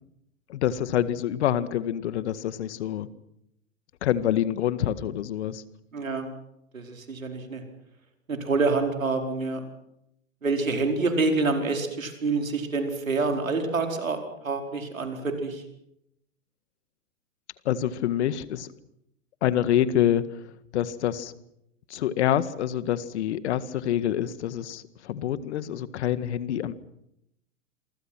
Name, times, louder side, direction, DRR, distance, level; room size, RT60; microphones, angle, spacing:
voice 1, 0.5-3.1 4.0-5.6 17.7-18.7 19.4-20.2 20.7-21.3 21.9-26.7, left 11 dB, 55° left, 14 dB, 1.9 m, -26 dB
voice 2, 5.9-6.3 6.7-7.6 8.3-9.6 10.4-14.2 14.4-15.6, right 3 dB, 80° right, 5 dB, 4.9 m, -27 dB
27.5 x 24.0 x 6.1 m, 0.79 s
figure-of-eight pair, 110°, 40 cm